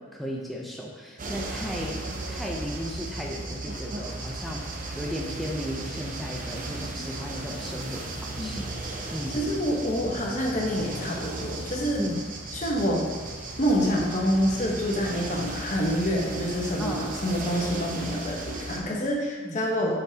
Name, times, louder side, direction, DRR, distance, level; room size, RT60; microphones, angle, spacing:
voice 1, 0.1-8.7 9.1-9.4 12.0-12.2 16.8-17.2 18.7-19.0 19.4-19.6, equal, ahead, -2 dB, 0.5 m, -35 dB
sound 1, 1.2-18.8, right 2 dB, 40° right, 0.7 m, -36 dB
voice 2, 9.3-12.0 12.5-13.0 13.6-20.0, equal, 35° left, -1 dB, 1.0 m, -27 dB
7.2 x 5.5 x 2.8 m, 1.4 s
head